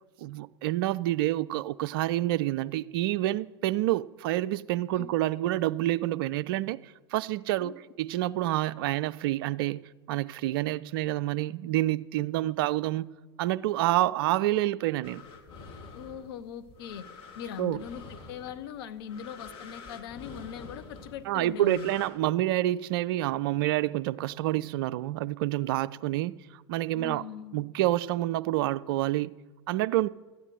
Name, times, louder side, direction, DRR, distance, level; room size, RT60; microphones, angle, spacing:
voice 1, 0.2-9.8 10.1-13.1 13.4-15.2 17.6-17.8 21.3-27.2 27.5-29.3 29.7-30.1, right 15 dB, 55° right, 0.4 m, -28 dB
sound 1, 15.0-22.1, left 4 dB, 35° left, 1.8 m, -47 dB
voice 2, 15.9-17.0 17.4-18.0 18.3-21.9 26.9-27.6, left 8 dB, 55° left, 0.8 m, -40 dB
13.0 x 9.0 x 6.4 m
figure-of-eight pair, 90°, 15 cm